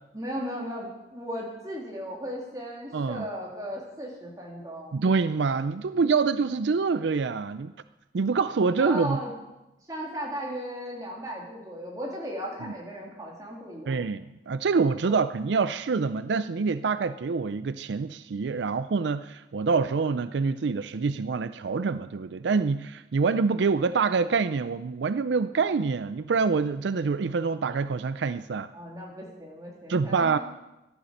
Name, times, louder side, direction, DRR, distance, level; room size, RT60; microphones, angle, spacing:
voice 1, 0.1-5.0 8.8-9.3 9.9-14.0 15.0-15.2 28.7-30.4, equal, 20° right, -3 dB, 3.2 m, -36 dB
voice 2, 2.9-3.2 4.9-7.7 8.1-9.2 13.9-28.7 29.9-30.4, right 4 dB, 75° right, 13 dB, 0.4 m, -26 dB
14.0 x 11.5 x 6.6 m, 0.98 s
head